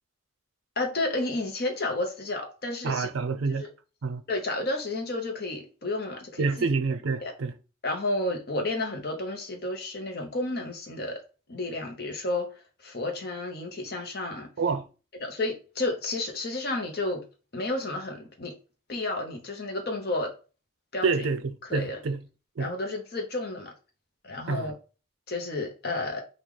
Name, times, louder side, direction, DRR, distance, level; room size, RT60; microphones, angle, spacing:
voice 1, 0.8-3.1 3.5-3.7 4.3-6.7 7.2-7.3 7.8-11.2 11.5-12.5 12.8-14.5 15.2-17.2 17.5-18.5 18.9-20.3 20.9-21.3 21.6-22.0 22.6-23.7 24.2-24.7 25.3-26.2, left 2 dB, 50° left, 0.8 m, -31 dB
voice 2, 2.8-3.6 4.0-4.2 6.4-7.5 14.6-14.8 21.0-22.2 22.6-22.7 24.5-24.7, right 4 dB, 80° right, 0.5 m, -27 dB
3.1 x 2.3 x 3.6 m
head